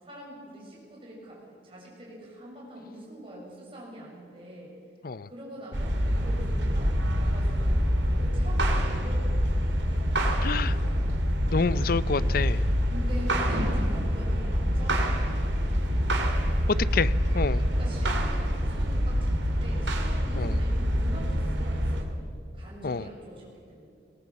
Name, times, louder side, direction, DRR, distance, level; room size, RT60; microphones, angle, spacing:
voice 1, 0.0-4.7 5.3-7.8 8.2-9.9 12.9-17.3 17.7-22.2 22.5-23.9, equal, 30° right, -4 dB, 7.2 m, -44 dB
sound 1, 5.7-22.0, equal, 80° right, 2.7 m, -26 dB
voice 2, 10.4-10.8 11.5-12.6 16.9-17.6 20.4-20.6 22.8-23.0, left 4 dB, 50° left, 17 dB, 0.5 m, -28 dB
20.5 x 18.5 x 7.4 m, 2.4 s
head